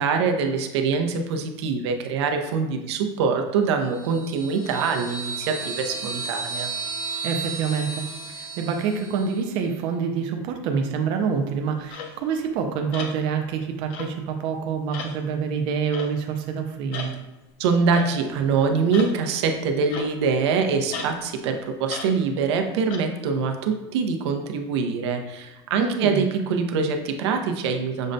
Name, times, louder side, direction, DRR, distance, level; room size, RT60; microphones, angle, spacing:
voice 1, 0.0-6.7 17.6-28.1, right 5 dB, 85° right, 5 dB, 0.5 m, -24 dB
sound 1, 3.9-9.4, right 4 dB, 70° left, 1.3 m, -33 dB
voice 2, 7.2-17.1 25.8-26.2, right 6 dB, 35° right, 4 dB, 0.3 m, -27 dB
sound 2, 11.9-12.2 12.9-13.2 13.9-14.2 14.9-15.2 15.9-16.2 16.9-17.2 17.9-18.1 18.9-19.2 19.9-20.3 20.9-21.2 21.9-22.1 22.9-23.0, left 5 dB, 40° left, 0.4 m, -35 dB
6.2 x 2.1 x 2.6 m, 1.1 s
supercardioid pair, 180°, 14 cm